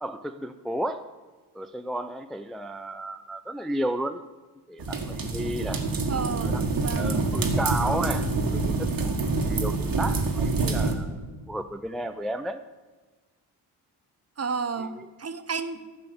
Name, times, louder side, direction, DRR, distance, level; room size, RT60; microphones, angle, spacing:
voice 1, 0.0-1.1 1.5-4.2 4.7-5.8 6.4-11.2 11.5-12.6 14.8-15.1, right 1 dB, ahead, 8 dB, 0.4 m, -33 dB
sound 1, 4.8-10.9, right 3 dB, 55° right, 1.7 m, -26 dB
voice 2, 6.1-7.2 14.4-15.8, right 5 dB, 35° right, 11 dB, 0.9 m, -32 dB
11.0 x 6.9 x 6.9 m, 1.3 s
cardioid pair, 70°, 42 cm